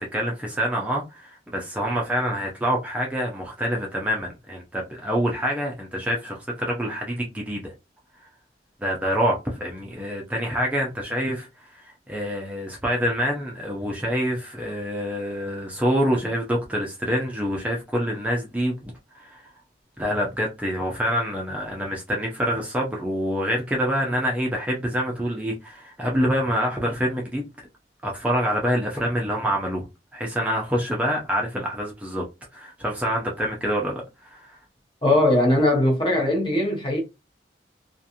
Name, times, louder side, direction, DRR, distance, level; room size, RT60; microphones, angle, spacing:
voice 1, 0.1-7.7 8.8-19.4 20.0-27.5 28.0-29.9 30.1-32.2 32.5-34.6, equal, 10° right, 0.5 m, -26 dB
voice 2, 35.0-37.0, left 1 dB, 30° left, 0.9 m, -20 dB
2.4 x 2.4 x 2.8 m
head